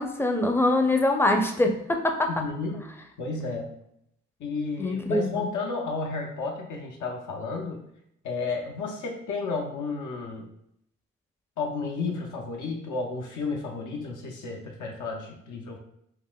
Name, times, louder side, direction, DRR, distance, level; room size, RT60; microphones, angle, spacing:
voice 1, 0.0-2.3 4.8-5.5, left 2 dB, 5° left, 3 dB, 0.5 m, -24 dB
voice 2, 2.3-2.8 3.2-3.7 4.4-7.8 8.2-10.5 11.6-15.8, left 4 dB, 70° left, 0 dB, 0.6 m, -32 dB
3.8 x 2.5 x 2.2 m, 0.75 s
supercardioid pair, 50°, 32 cm